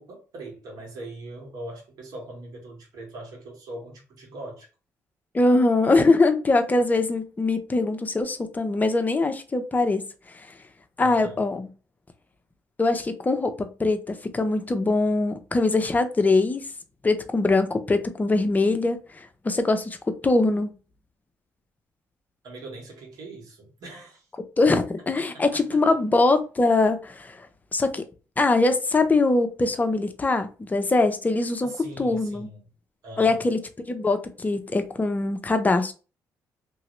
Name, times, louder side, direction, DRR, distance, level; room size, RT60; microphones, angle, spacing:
voice 1, 0.0-4.7 11.0-11.4 22.4-24.3 25.2-25.8 31.6-32.6 33.0-33.5, right 2 dB, 65° right, 1.7 m, -41 dB
voice 2, 5.3-10.1 11.0-11.7 12.8-16.7 17.0-20.7 24.6-27.4 27.7-28.0 28.4-31.7 32.0-32.5 33.2-33.6 33.9-35.9, left 3 dB, 25° left, 0.7 m, -22 dB
2.9 x 2.7 x 3.2 m
supercardioid pair, 70°, 7 cm